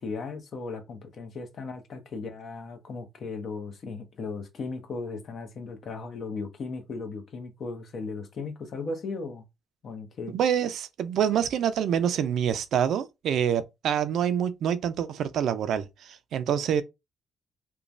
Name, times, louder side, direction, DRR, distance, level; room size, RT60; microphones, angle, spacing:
voice 1, 0.0-9.4 9.8-10.4, left 4 dB, 55° left, 0.8 m, -36 dB
voice 2, 10.3-16.8, right 9 dB, 75° right, 0.4 m, -26 dB
3.0 x 2.2 x 2.5 m
cardioid pair, 90°, 0 cm